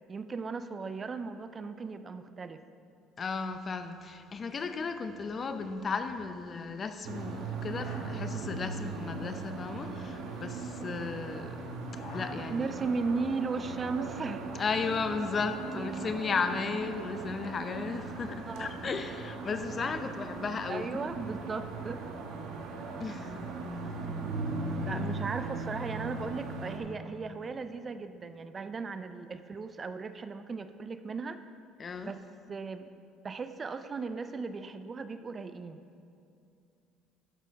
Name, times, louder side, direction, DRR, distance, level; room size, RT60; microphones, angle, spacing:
voice 1, 0.1-2.6 12.5-14.6 18.5-18.8 20.7-22.1 24.8-31.4 32.1-32.9 33.2-35.8, right 4 dB, 30° right, 11 dB, 0.4 m, -36 dB
voice 2, 3.2-11.6 12.1-12.7 14.6-21.0 23.0-23.5 24.8-25.0 31.8-32.1, left 4 dB, 35° left, 9 dB, 0.6 m, -35 dB
sound 1, 4.5-4.6 4.8-5.2 5.5-6.7 7.4-11.4 11.6-13.9 14.2-15.1, left 2 dB, 60° left, 2.0 m, -51 dB
sound 2, 7.0-26.8, right 3 dB, 80° right, 1.1 m, -38 dB
11.0 x 6.6 x 3.6 m, 2.6 s
cardioid pair, 105°, 0 cm